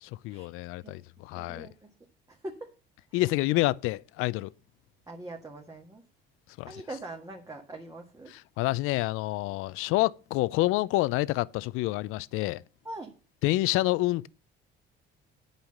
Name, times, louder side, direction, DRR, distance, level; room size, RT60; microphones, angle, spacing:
voice 1, 0.0-1.7 3.1-4.5 6.6-6.7 8.6-12.6 13.4-14.3, left 18 dB, 85° left, 0.5 m, -28 dB
voice 2, 1.3-1.9 2.3-2.7 3.1-3.3 5.1-6.0 6.6-8.3 9.5-9.6 12.8-13.1, right 2 dB, 15° right, 1.6 m, -42 dB
8.9 x 5.6 x 7.7 m
cardioid pair, 110°, 21 cm